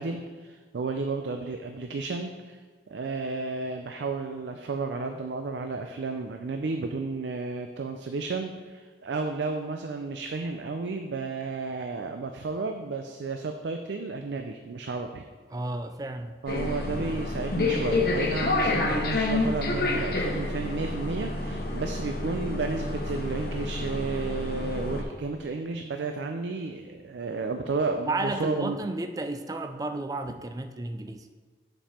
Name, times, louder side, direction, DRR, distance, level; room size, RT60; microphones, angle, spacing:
voice 1, 0.0-2.6 2.9-15.2 16.4-28.8, right 3 dB, 85° right, 5 dB, 0.5 m, -32 dB
voice 2, 15.5-16.4 28.1-31.3, right 2 dB, 20° right, 8 dB, 0.3 m, -32 dB
sound 1, 16.5-25.0, left 2 dB, 60° left, 0.9 m, -28 dB
7.4 x 5.3 x 4.3 m, 1.5 s
head